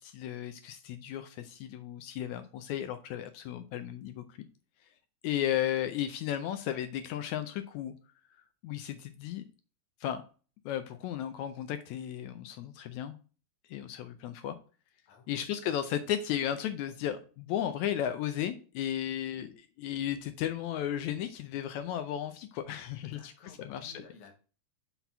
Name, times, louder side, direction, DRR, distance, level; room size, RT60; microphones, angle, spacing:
voice 1, 0.0-4.4 5.2-7.9 8.6-9.4 10.0-10.2 10.6-13.2 13.7-14.6 15.3-24.0, left 11 dB, 80° left, 9 dB, 1.7 m, -34 dB
voice 2, 15.1-15.9 23.0-24.3, left 3 dB, 65° left, 2 dB, 2.5 m, -55 dB
6.0 x 4.2 x 5.5 m, 0.37 s
omnidirectional pair, 3.8 m